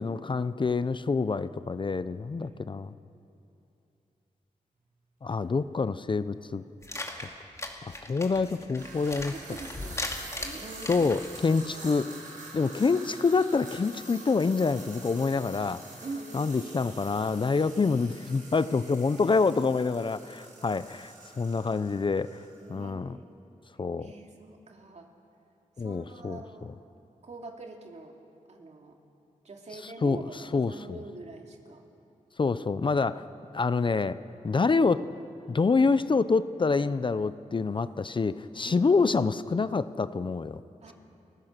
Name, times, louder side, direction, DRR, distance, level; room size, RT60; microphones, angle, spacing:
voice 1, 0.0-2.9 5.2-6.6 7.8-9.3 10.9-12.1 12.5-15.8 16.3-22.4 22.7-23.2 23.8-24.1 25.8-26.4 30.0-30.2 30.5-31.0 32.4-33.2 33.5-34.2 34.4-35.1 35.5-40.6, left 4 dB, 40° left, 14 dB, 0.6 m, -26 dB
voice 2, 2.4-2.8 9.1-10.1 10.4-11.1 11.7-11.9 16.0-17.0 22.5-23.3 24.0-25.1 25.8-26.8 27.2-28.2 28.5-29.0 29.4-31.8 38.7-39.0 40.8-40.9, right 3 dB, 55° right, 2 dB, 2.5 m, -44 dB
sound 1, 5.4-5.5 6.5-6.6 8.6-22.7, right 2 dB, 75° right, 5.5 m, -47 dB
sound 2, 6.8-11.5, left 2 dB, 20° left, 2.5 m, -38 dB
30.0 x 15.0 x 6.7 m, 2.7 s
wide cardioid pair, 95°, 13 cm